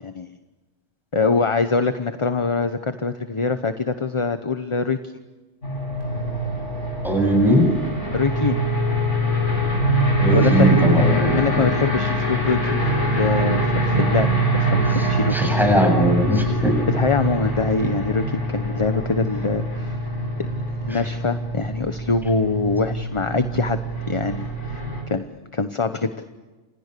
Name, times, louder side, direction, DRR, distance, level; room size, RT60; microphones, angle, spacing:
voice 1, 0.0-0.4 1.1-5.1 8.1-8.6 10.3-10.7 11.3-14.3 14.6-15.4 16.9-20.0 20.4-20.5 20.8-23.8 24.1-24.8 25.1-25.3 25.5-26.1, left 4 dB, 25° left, 9 dB, 0.9 m, -23 dB
sound 1, 5.6-25.0, right 1 dB, 65° left, 8.5 m, -23 dB
voice 2, 7.0-7.7 10.2-11.4 14.9-16.8 20.9-21.0, equal, ahead, 3 dB, 7.7 m, -19 dB
29.5 x 27.5 x 6.8 m, 1.2 s
omnidirectional pair, 1.3 m